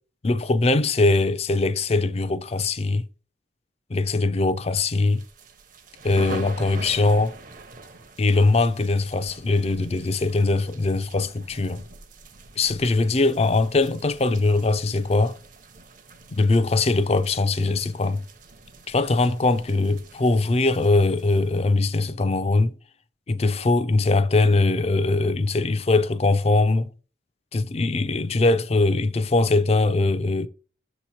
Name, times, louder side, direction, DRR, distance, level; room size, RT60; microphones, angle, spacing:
voice 1, 0.2-3.1 3.9-5.2 6.0-7.4 8.2-11.8 12.6-15.4 16.3-18.2 18.9-22.7 23.3-26.9 27.5-30.5, left 3 dB, 35° left, 0.4 m, -21 dB
sound 1, 5.0-21.9, right 3 dB, 45° right, 0.8 m, -44 dB
6.9 x 3.0 x 5.6 m
head